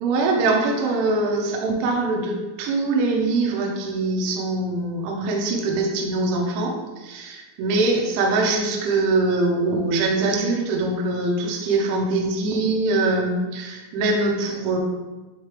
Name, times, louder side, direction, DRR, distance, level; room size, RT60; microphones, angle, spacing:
voice 1, 0.0-14.8, right 3 dB, 80° right, 0 dB, 3.2 m, -23 dB
8.1 x 4.0 x 3.3 m, 1.2 s
omnidirectional pair, 5.9 m